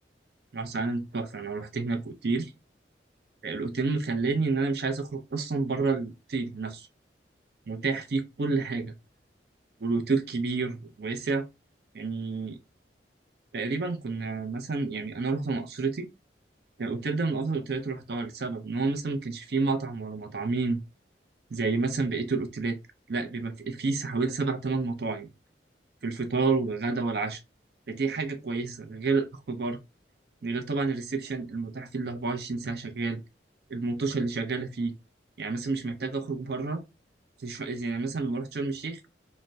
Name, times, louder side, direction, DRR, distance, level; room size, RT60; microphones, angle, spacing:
voice 1, 0.5-2.5 3.4-6.9 7.7-8.9 9.8-11.5 11.9-12.6 13.5-16.1 16.8-20.8 21.5-22.8 23.1-25.3 26.0-27.4 27.9-29.8 30.4-33.2 33.7-34.9 35.4-36.8 37.4-39.0, right 3 dB, 60° right, 0.5 m, -29 dB
3.3 x 2.0 x 2.6 m
head